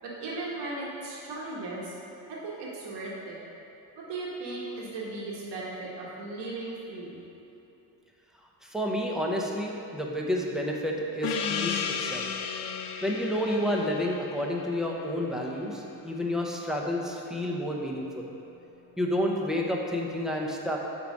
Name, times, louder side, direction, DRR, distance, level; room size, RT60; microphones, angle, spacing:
voice 1, 0.0-1.9 2.3-3.4 3.9-7.2, right 2 dB, 90° right, -5 dB, 1.5 m, -37 dB
voice 2, 8.6-12.3 13.0-18.3 19.0-20.8, equal, ahead, -1 dB, 0.6 m, -30 dB
Gong, 11.2-16.3, left 7 dB, 75° left, 0.6 m, -35 dB
7.1 x 4.7 x 5.1 m, 2.9 s
cardioid pair, 145°, 41 cm